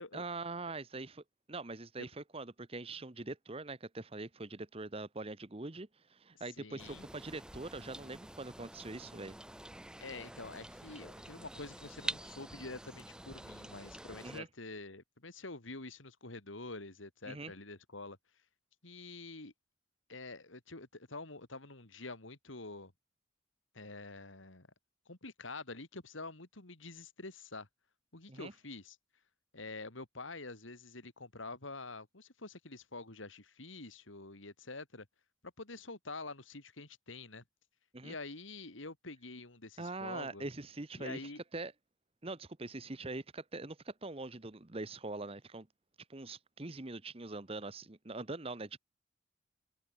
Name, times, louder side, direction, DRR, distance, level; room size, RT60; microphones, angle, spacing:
voice 1, 0.1-9.4 14.2-14.5 17.3-17.5 28.3-28.5 37.9-38.1 39.8-41.7 42.2-45.7 46.1-48.8, right 2 dB, 30° right, 1.0 m, -43 dB
voice 2, 6.6-7.0 10.0-18.2 18.8-19.5 20.1-22.9 23.7-24.7 25.1-27.7 28.1-29.0 29.5-35.1 35.6-37.4 38.0-40.4 41.0-41.4, left 3 dB, 80° left, 3.2 m, -47 dB
sound 1, 6.8-14.4, right 1 dB, 5° right, 0.8 m, -47 dB
head